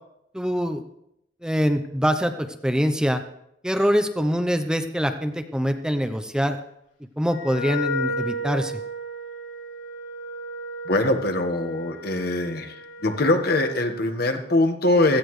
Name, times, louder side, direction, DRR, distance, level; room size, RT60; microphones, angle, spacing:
voice 1, 0.3-0.8 1.4-3.2 3.6-6.6 7.2-8.7, equal, 5° right, 7 dB, 0.7 m, -24 dB
Wind instrument woodwind instrument, 7.3-13.9, equal, 85° left, 7.0 m, -33 dB
voice 2, 10.9-12.7 13.0-15.2, left 2 dB, 60° left, 6 dB, 1.4 m, -22 dB
17.0 x 14.5 x 3.2 m, 0.78 s
head